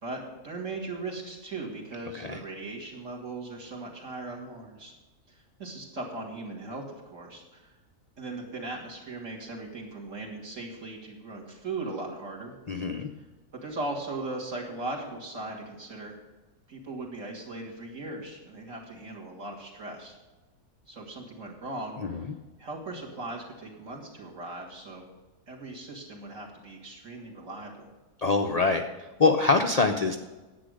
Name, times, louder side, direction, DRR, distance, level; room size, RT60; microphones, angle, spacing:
voice 1, 0.0-4.9 5.3-7.7 8.2-12.5 13.5-16.1 16.7-20.2 20.9-22.2 22.6-25.0 25.5-27.9, right 2 dB, 55° right, -2 dB, 2.8 m, -38 dB
voice 2, 12.7-13.1 22.0-22.3 28.2-28.8 29.2-30.2, left 3 dB, 50° left, 5 dB, 0.5 m, -24 dB
10.5 x 8.6 x 6.5 m, 1.2 s
omnidirectional pair, 1.6 m